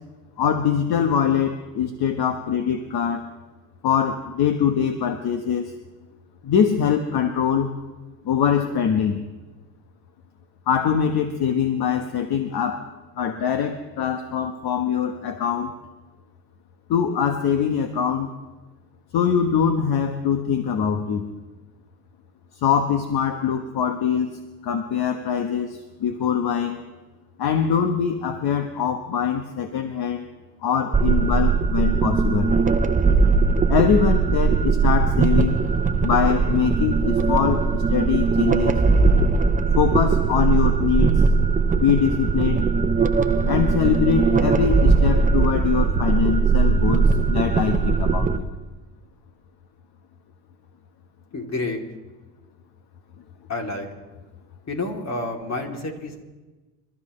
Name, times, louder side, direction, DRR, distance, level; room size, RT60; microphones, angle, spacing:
voice 1, 0.4-3.3 3.8-5.7 6.4-7.7 8.2-9.2 10.7-12.9 13.2-15.8 16.9-18.3 19.1-21.3 22.5-24.3 24.6-26.8 27.4-30.3 30.6-32.5 33.7-35.6 36.0-38.8 39.7-41.3 41.7-42.6 43.5-48.5, left 7 dB, 55° left, 7 dB, 1.3 m, -23 dB
sound 1, 30.9-48.4, right 4 dB, 15° right, 1.0 m, -19 dB
voice 2, 51.3-51.8 53.5-53.9 54.7-56.2, left 2 dB, 35° left, 1 dB, 3.3 m, -29 dB
27.5 x 13.5 x 3.3 m, 1.2 s
supercardioid pair, 80°, 45 cm